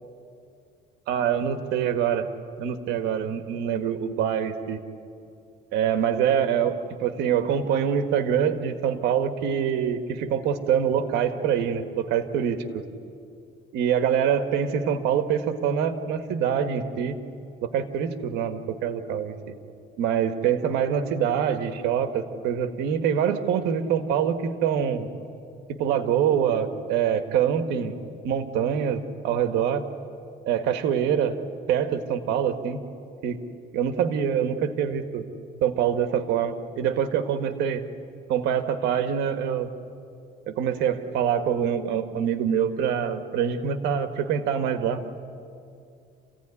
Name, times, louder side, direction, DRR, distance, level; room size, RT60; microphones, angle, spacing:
voice 1, 1.1-2.3 2.6-4.8 5.7-12.8 13.7-17.2 17.6-19.4 20.0-25.1 25.7-28.0 28.2-29.8 30.5-31.4 31.7-32.8 33.2-33.4 33.7-35.3 35.6-37.8 38.3-39.7 40.5-45.1, right 8 dB, 85° right, 9 dB, 1.6 m, -25 dB
27.5 x 16.0 x 9.9 m, 2.5 s
cardioid pair, 110°, 17 cm